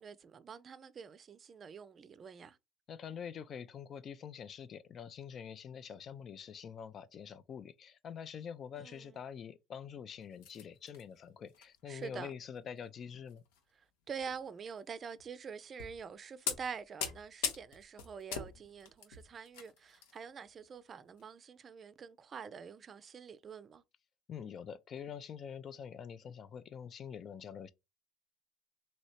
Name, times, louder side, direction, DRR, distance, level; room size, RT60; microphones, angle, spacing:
voice 1, 0.0-2.6 8.7-9.2 11.9-12.3 14.1-23.8, right 6 dB, 40° right, 0.4 m, -46 dB
voice 2, 2.9-13.4 24.3-27.7, left 7 dB, 45° left, 0.4 m, -46 dB
sound 1, 10.3-11.0 11.5-11.6 12.0-12.3 13.3-13.6 14.2-14.4 15.2-15.3 15.8-16.1 16.5-20.1 20.4-20.6 21.2-21.3, left 7 dB, 80° left, 0.7 m, -40 dB
3.0 x 2.8 x 2.8 m
hypercardioid pair, 75°, 0 cm